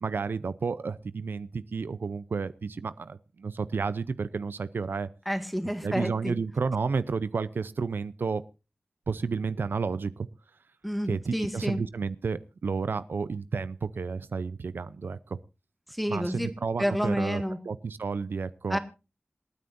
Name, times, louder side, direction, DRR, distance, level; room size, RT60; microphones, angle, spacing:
voice 1, 0.0-5.1 5.8-8.4 9.1-10.3 11.1-15.4 16.1-18.8, right 5 dB, 85° right, 15 dB, 0.6 m, -31 dB
voice 2, 5.3-6.4 10.8-11.8 15.9-16.5 16.8-17.6 18.7-18.8, equal, ahead, 8 dB, 1.9 m, -29 dB
27.5 x 9.5 x 2.6 m, 0.30 s
wide cardioid pair, 75°, 3 cm